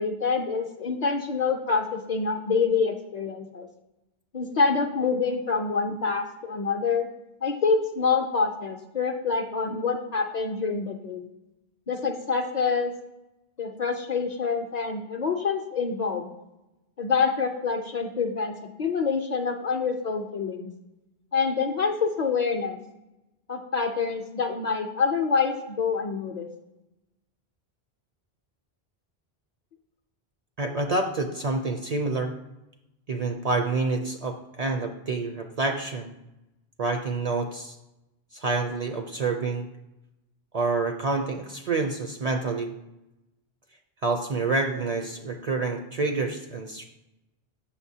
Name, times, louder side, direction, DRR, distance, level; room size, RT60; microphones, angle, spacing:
voice 1, 0.0-3.7 4.3-7.1 7.4-11.3 11.9-12.9 13.6-16.3 17.0-20.7 21.3-22.8 23.5-26.5, left 5 dB, 50° left, 4 dB, 0.6 m, -26 dB
voice 2, 30.6-32.3 33.1-36.1 36.8-37.8 38.3-39.7 40.5-42.7 44.0-46.8, right 3 dB, 50° right, 4 dB, 0.5 m, -28 dB
7.3 x 6.4 x 2.7 m, 0.94 s
omnidirectional pair, 1.0 m